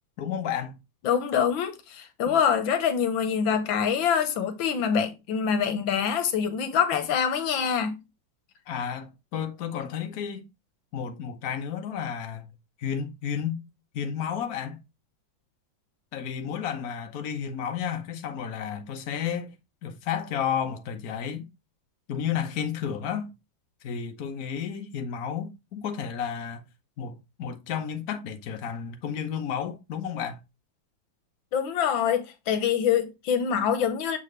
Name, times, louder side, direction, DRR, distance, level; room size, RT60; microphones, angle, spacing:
voice 1, 0.2-0.8 2.3-2.4 8.7-10.4 10.9-12.5 12.8-13.6 13.9-14.8 16.1-19.5 19.8-21.5 22.1-23.3 23.8-26.6 27.0-30.4, left 8 dB, 55° left, 1.3 m, -32 dB
voice 2, 1.0-8.0 31.5-34.2, left 7 dB, 90° left, 1.7 m, -25 dB
7.1 x 4.2 x 3.2 m
omnidirectional pair, 2.1 m